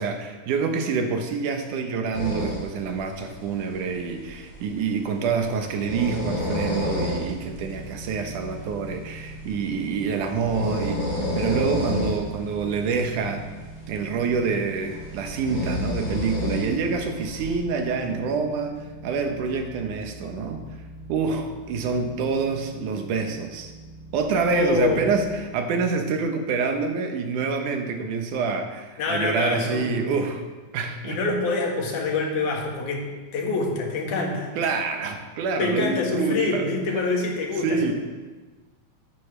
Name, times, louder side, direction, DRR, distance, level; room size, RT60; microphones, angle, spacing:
voice 1, 0.0-11.1 11.4-13.4 13.9-18.7 19.0-20.6 21.1-23.7 24.1-30.4 30.7-31.2 34.6-36.7 37.0-37.1 37.6-37.9, right 5 dB, 85° right, 5 dB, 2.5 m, -27 dB
sound 1, 2.1-17.5, left 1 dB, 20° left, 2.8 m, -32 dB
sound 2, 5.7-25.4, equal, 50° right, 5.5 m, -42 dB
voice 2, 24.5-25.0 29.0-30.1 31.0-33.1 33.3-34.5 35.6-37.9, left 3 dB, 80° left, 0 dB, 3.1 m, -25 dB
13.5 x 10.0 x 3.3 m, 1.3 s
omnidirectional pair, 3.5 m